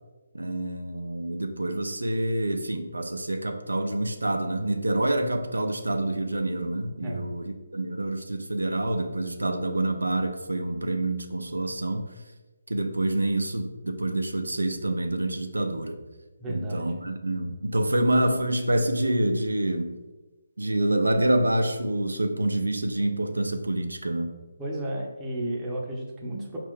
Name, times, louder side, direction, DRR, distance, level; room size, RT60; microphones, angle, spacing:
voice 1, 0.3-7.4 7.7-12.1 12.7-16.0 16.5-20.0 20.6-24.3, right 1 dB, 85° right, 5 dB, 0.4 m, -27 dB
voice 2, 7.0-7.3 16.4-17.0 24.6-26.6, right 1 dB, 10° right, -3 dB, 0.6 m, -33 dB
4.3 x 2.5 x 3.6 m, 1.2 s
figure-of-eight pair, 150°, 0 cm